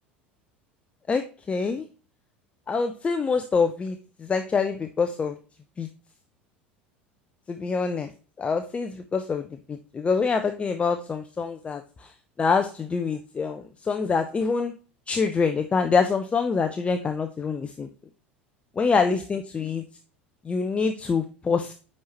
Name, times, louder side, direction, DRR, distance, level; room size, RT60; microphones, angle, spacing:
voice 1, 1.1-1.8 2.7-5.4 5.8-5.9 7.5-8.1 8.4-12.1 12.4-14.7 15.1-17.9 18.8-19.8 20.4-21.7, left 5 dB, 20° left, 7 dB, 0.5 m, -25 dB
9.2 x 4.3 x 3.0 m, 0.35 s
figure-of-eight pair, 70°, 6 cm